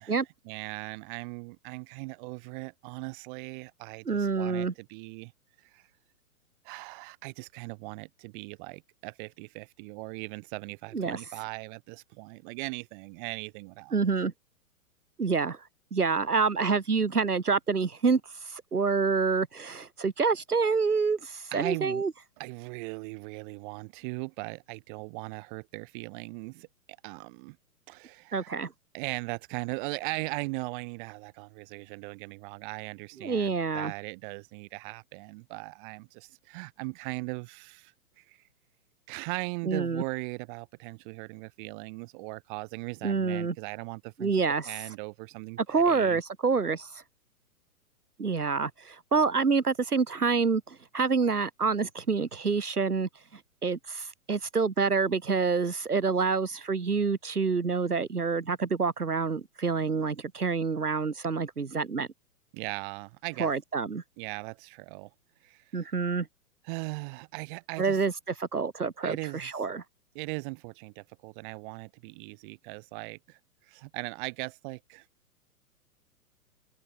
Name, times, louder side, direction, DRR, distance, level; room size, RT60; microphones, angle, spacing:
voice 1, 0.4-5.3 5.6-5.9 6.6-14.0 21.5-22.0 22.4-26.7 27.0-27.6 27.9-28.5 28.9-38.4 39.1-46.2 62.5-63.5 64.2-65.1 65.4-65.9 66.6-68.0 69.0-69.6 70.1-75.1, right 28 dB, 35° right, 3.9 m, -39 dB
voice 2, 4.1-4.7 10.9-11.2 13.9-14.3 15.2-15.6 15.9-22.1 28.3-28.7 33.2-33.9 39.7-40.0 43.0-43.5 44.2-44.7 45.7-47.0 48.2-62.1 63.4-64.0 65.7-66.3 67.8-68.1 68.4-69.8, right 5 dB, 85° right, 1.3 m, -27 dB
figure-of-eight pair, 110°, 44 cm